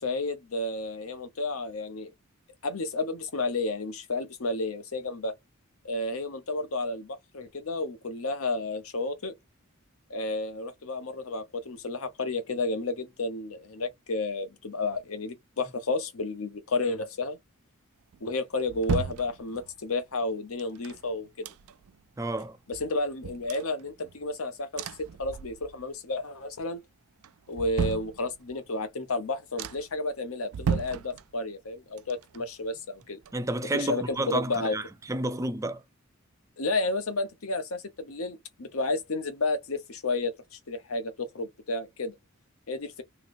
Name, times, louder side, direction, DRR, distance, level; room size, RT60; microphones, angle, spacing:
voice 1, 0.0-2.1 2.6-5.4 5.8-9.4 10.1-17.4 18.2-21.5 22.7-26.8 27.5-33.2 33.7-34.8 36.6-42.2 42.7-43.0, left 2 dB, 80° left, 0.9 m, -31 dB
sound 1, 18.1-19.9 20.6-22.0 22.4-22.5 22.7-24.3 24.7-25.9 26.2-26.7 27.2-28.7 29.1-29.2 29.6-30.0 30.5-31.7 32.0-33.8 34.1-34.2, right 7 dB, 90° right, 0.4 m, -36 dB
voice 2, 22.2-22.6 33.3-35.8, right 2 dB, 15° right, 0.4 m, -31 dB
3.0 x 3.0 x 2.5 m
head